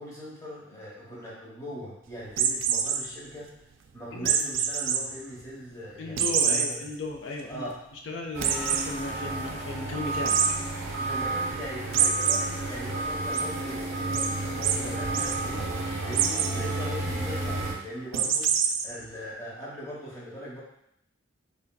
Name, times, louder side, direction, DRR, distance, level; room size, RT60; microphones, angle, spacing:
voice 1, 0.0-3.5 3.9-6.8 7.5-7.8 11.0-15.6 16.0-18.6 18.8-20.6, equal, 15° left, -7 dB, 0.9 m, -40 dB
sound 1, 2.3-3.0 4.2-5.0 5.4-5.5 6.2-6.7 7.1-7.2 7.5-7.6 8.4-8.8 10.2-10.5 11.9-12.4 12.8-13.4 14.1-14.3 14.6-14.7 15.0-15.3 16.1-16.5 18.1-18.8, right 8 dB, 85° right, 0.3 m, -25 dB
voice 2, 6.0-7.6 8.1-10.4, left 2 dB, 70° left, 1 dB, 0.4 m, -35 dB
sound 2, 8.3-17.7, right 2 dB, 35° right, 0.6 m, -31 dB
3.3 x 2.5 x 2.2 m, 0.76 s
head